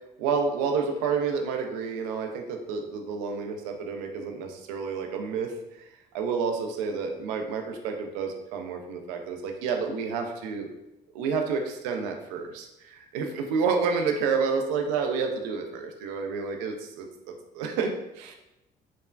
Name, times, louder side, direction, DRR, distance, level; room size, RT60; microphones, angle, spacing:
voice 1, 0.2-5.5 6.1-10.7 11.1-17.1 17.5-18.3, right 5 dB, 85° right, 3 dB, 0.4 m, -29 dB
3.2 x 2.0 x 2.3 m, 0.92 s
supercardioid pair, 65°, 21 cm